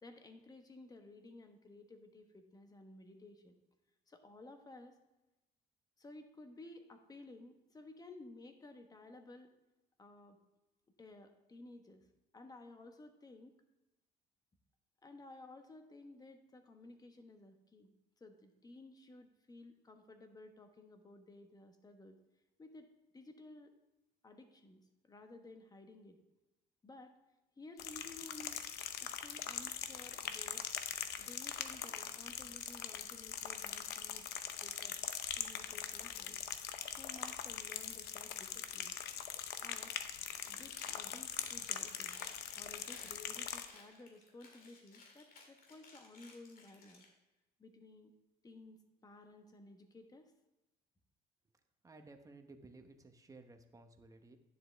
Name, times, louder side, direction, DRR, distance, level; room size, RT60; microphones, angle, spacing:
voice 1, 0.0-3.6 4.1-5.0 6.0-9.5 10.0-10.4 11.0-12.1 12.3-13.6 15.0-22.2 22.6-22.9 23.1-23.7 24.2-26.2 26.8-27.1 27.6-28.6 29.0-30.6 31.2-34.3 34.6-35.0 35.3-36.4 37.0-38.9 39.6-39.9 40.4-42.2 42.5-47.0 47.6-48.1 48.4-50.3, left 2 dB, 20° left, 6 dB, 1.2 m, -55 dB
sound 1, 27.8-43.7, left 9 dB, 75° left, 0.7 m, -42 dB
Chewing mastication, 39.3-39.8 40.1-47.1, left 3 dB, 55° left, 2.1 m, -59 dB
voice 2, 51.8-54.4, right 3 dB, 20° right, 6 dB, 1.0 m, -57 dB
10.5 x 7.3 x 3.4 m, 1.0 s
cardioid pair, 110°, 17 cm